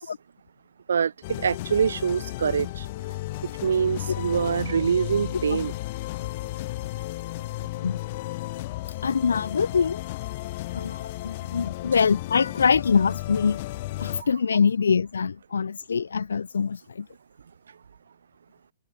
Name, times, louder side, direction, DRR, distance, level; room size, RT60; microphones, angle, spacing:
voice 1, 0.9-2.9 3.4-5.7 14.2-14.3, right 7 dB, 85° right, 0.4 m, -25 dB
sound 1, 1.2-14.2, left 18 dB, 50° left, 0.6 m, -34 dB
voice 2, 9.0-10.0 10.7-13.6 14.0-17.1, left 6 dB, 90° left, 0.3 m, -24 dB
open air
hypercardioid pair, 130°, 0 cm